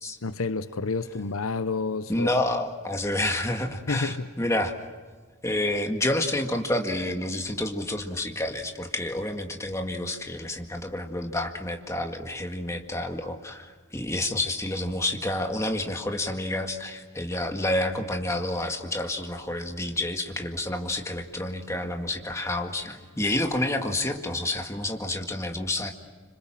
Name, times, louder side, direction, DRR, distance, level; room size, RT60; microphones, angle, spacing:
voice 1, 0.2-2.3 3.9-4.3, left 3 dB, 80° left, 0.8 m, -29 dB
voice 2, 2.1-4.7 5.4-25.9, left 1 dB, 15° left, 1.9 m, -29 dB
26.5 x 26.0 x 7.6 m
head